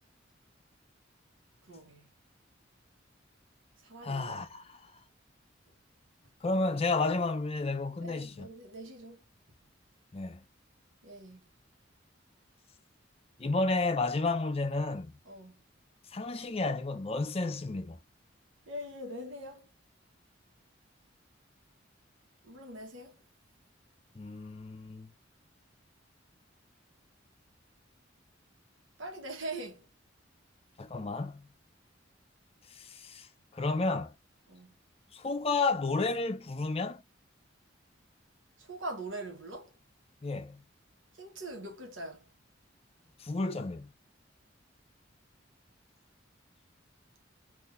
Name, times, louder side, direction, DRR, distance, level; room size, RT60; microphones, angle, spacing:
voice 1, 1.7-2.1 3.8-4.4 8.0-9.2 11.0-11.5 15.3-15.6 18.7-19.7 22.4-23.2 29.0-29.9 34.5-34.7 38.6-39.7 41.2-42.3, right 1 dB, 90° right, 1.1 m, -42 dB
voice 2, 4.0-4.8 6.4-8.5 10.1-10.4 13.4-15.1 16.1-18.0 24.2-25.1 30.8-31.5 32.8-33.3 33.5-34.1 35.1-37.0 40.2-40.6 43.2-43.9, left 3 dB, 30° left, 0.5 m, -31 dB
3.8 x 2.6 x 2.6 m
head